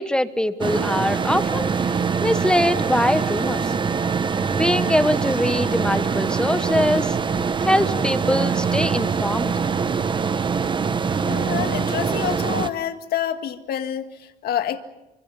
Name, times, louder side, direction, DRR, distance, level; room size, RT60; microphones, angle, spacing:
voice 1, 0.0-3.7 4.6-7.2 7.6-9.5, left 1 dB, 5° left, 11 dB, 1.3 m, -23 dB
sound 1, 0.6-12.7, right 5 dB, 30° right, 1.0 m, -23 dB
voice 2, 11.2-14.8, left 10 dB, 65° left, 8 dB, 2.0 m, -27 dB
29.0 x 24.5 x 5.5 m, 0.96 s
cardioid pair, 110°, 17 cm